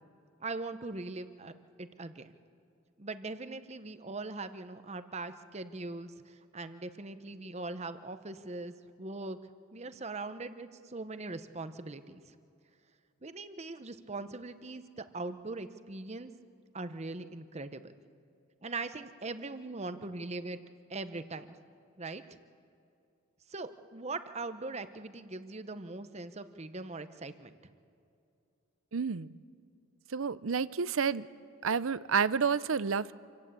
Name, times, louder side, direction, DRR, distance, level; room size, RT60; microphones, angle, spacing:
voice 1, 0.4-1.5 1.8-2.3 3.0-8.7 9.0-9.4 9.7-12.3 13.2-16.3 16.7-17.9 18.6-20.6 20.9-21.6 22.0-22.2 23.5-27.6, right 3 dB, 30° right, 11 dB, 0.9 m, -41 dB
voice 2, 28.9-29.3 30.1-31.3 31.6-33.1, right 6 dB, 75° right, 17 dB, 0.6 m, -30 dB
27.0 x 16.5 x 8.2 m, 2.5 s
head